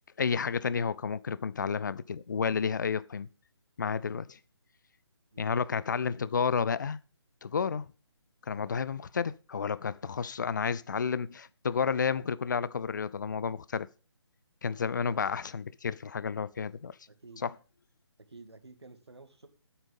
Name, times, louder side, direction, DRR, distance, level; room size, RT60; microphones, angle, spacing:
voice 1, 0.2-3.3 3.8-4.4 5.4-7.0 7.4-7.9 8.5-13.9 14.6-16.9 17.4-17.5, left 6 dB, 45° left, 0.6 m, -31 dB
voice 2, 5.3-5.7 8.5-8.7 15.0-15.3 17.1-17.4 18.2-19.5, right 3 dB, 70° right, 2.3 m, -52 dB
12.5 x 8.9 x 5.4 m
figure-of-eight pair, 145°, 14 cm